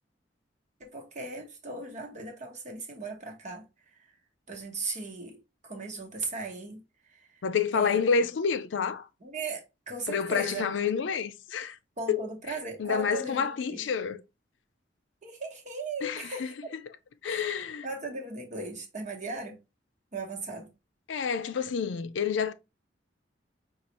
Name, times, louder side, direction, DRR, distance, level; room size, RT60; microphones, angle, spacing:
voice 1, 0.8-4.1 4.5-7.4 7.7-8.0 9.2-10.8 12.0-13.9 15.2-16.7 17.2-19.6 20.1-20.7, right 3 dB, 40° right, 1.1 m, -38 dB
voice 2, 7.4-9.1 10.1-11.8 12.1-12.2 12.8-14.2 16.0-16.5 17.2-17.9 21.1-22.5, left 6 dB, 85° left, 0.4 m, -28 dB
5.3 x 2.4 x 3.0 m
head